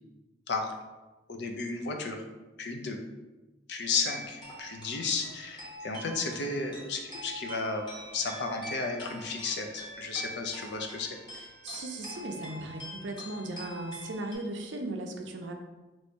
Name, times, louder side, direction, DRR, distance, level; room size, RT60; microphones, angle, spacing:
voice 1, 1.3-2.2 2.6-3.0 3.7-7.9 8.1-11.2, left 4 dB, 60° left, 3 dB, 0.5 m, -33 dB
sound 1, 3.8-14.3, equal, 25° left, 1.0 m, -44 dB
voice 2, 11.3-15.5, right 2 dB, 70° right, 4 dB, 0.5 m, -37 dB
3.1 x 2.7 x 4.4 m, 1.2 s
head